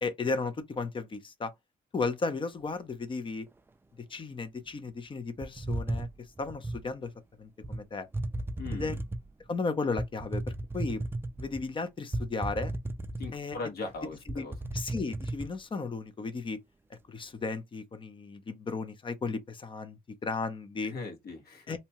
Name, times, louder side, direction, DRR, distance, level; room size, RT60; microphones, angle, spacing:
voice 1, 0.0-1.5 1.9-3.5 4.0-6.1 6.4-7.1 7.4-8.1 8.7-9.0 9.5-11.0 11.4-12.7 13.3-13.6 14.3-14.5 14.7-16.6 16.9-20.9 21.7-21.8, left 4 dB, 30° left, 0.6 m, -34 dB
sound 1, 5.4-6.9 7.6-7.8 8.1-9.3 10.0-11.6 12.1-13.6 13.9-14.0 14.3-15.5, right 2 dB, 15° right, 0.3 m, -34 dB
voice 2, 8.6-9.0 13.2-14.5 20.8-21.8, left 3 dB, 70° left, 1.2 m, -39 dB
2.7 x 2.2 x 2.8 m
cardioid pair, 100°, 17 cm